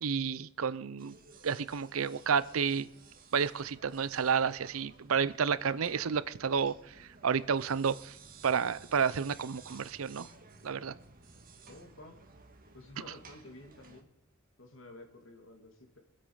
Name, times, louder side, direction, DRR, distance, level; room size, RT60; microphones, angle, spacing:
voice 1, 0.0-1.2 1.4-2.9 3.3-8.2 8.4-10.3 10.6-10.9, right 6 dB, 90° right, 17 dB, 0.6 m, -31 dB
sound 1, 1.0-14.0, right 4 dB, 45° right, 1.7 m, -56 dB
voice 2, 11.7-12.2 12.7-14.1 14.6-16.0, left 2 dB, 70° left, 4 dB, 2.6 m, -51 dB
24.5 x 8.3 x 5.6 m, 0.75 s
head